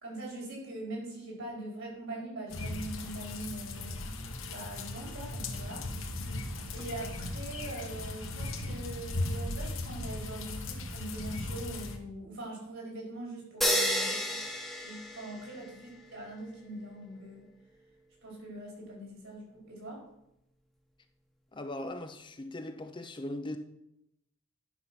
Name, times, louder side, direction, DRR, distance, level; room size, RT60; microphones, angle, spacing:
voice 1, 0.0-6.2 6.7-14.4 14.8-17.5 18.2-20.0, right 1 dB, 70° right, 4.6 m, -42 dB
sound 1, 2.5-12.0, left 2 dB, 70° left, 1.3 m, -37 dB
sound 2, 13.6-15.7, equal, ahead, 1.0 m, -31 dB
voice 2, 21.5-23.6, left 1 dB, 25° left, 0.6 m, -39 dB
11.0 x 5.8 x 5.8 m
head